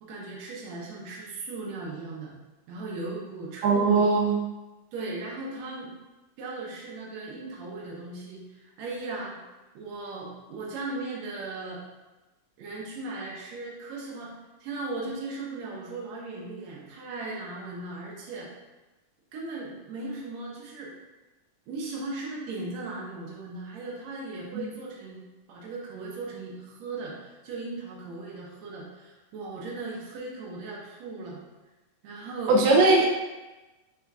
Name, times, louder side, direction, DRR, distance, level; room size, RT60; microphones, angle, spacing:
voice 1, 0.0-2.3 2.7-4.1 4.9-5.9 6.4-9.4 9.8-11.8 12.6-14.3 14.6-18.5 19.3-21.0 21.7-31.4 32.0-32.6 32.9-33.0, right 3 dB, 75° right, -3 dB, 1.8 m, -37 dB
voice 2, 3.6-4.4 32.5-33.1, right 3 dB, 90° right, -2 dB, 1.5 m, -19 dB
5.5 x 3.5 x 2.3 m, 1.1 s
omnidirectional pair, 3.8 m